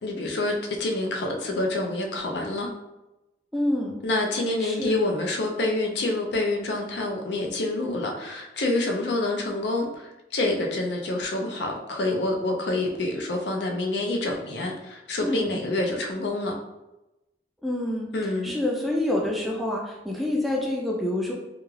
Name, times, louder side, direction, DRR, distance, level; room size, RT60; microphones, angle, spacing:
voice 1, 0.0-2.7 4.0-16.5 18.1-18.6, left 2 dB, 75° left, 2 dB, 0.5 m, -27 dB
voice 2, 3.5-4.0 4.6-5.0 15.2-15.6 17.6-21.3, left 1 dB, ahead, -3 dB, 0.3 m, -27 dB
2.3 x 2.3 x 3.1 m, 0.97 s
head